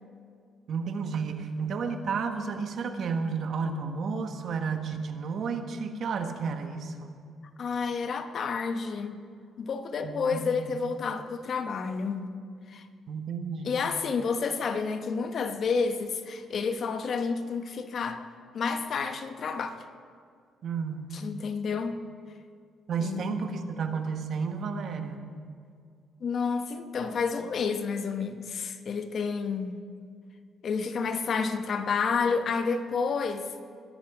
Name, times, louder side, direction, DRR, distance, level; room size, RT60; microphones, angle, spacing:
voice 1, 0.7-7.2 10.0-10.7 13.1-13.8 20.6-21.1 22.9-25.2, right 5 dB, 60° right, 1.3 m, -32 dB
voice 2, 7.6-9.2 9.6-12.3 12.7-12.9 13.6-18.2 18.5-19.8 21.1-22.1 23.0-23.5 26.2-29.8 30.6-33.6, left 5 dB, 55° left, 1.1 m, -30 dB
21.0 x 10.5 x 5.0 m
cardioid pair, 90°, 0 cm